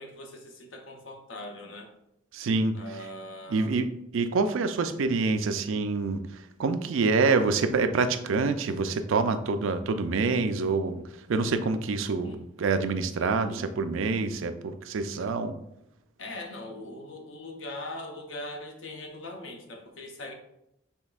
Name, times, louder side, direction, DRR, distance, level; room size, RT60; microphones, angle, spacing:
voice 1, 0.0-1.9 2.7-3.8 12.2-12.4 13.5-13.7 16.2-20.3, left 1 dB, 65° left, 3 dB, 0.8 m, -41 dB
voice 2, 2.3-2.8 3.5-3.9 4.1-11.0 11.3-15.5, right 4 dB, 70° right, 9 dB, 0.4 m, -26 dB
6.1 x 3.3 x 2.4 m, 0.81 s
head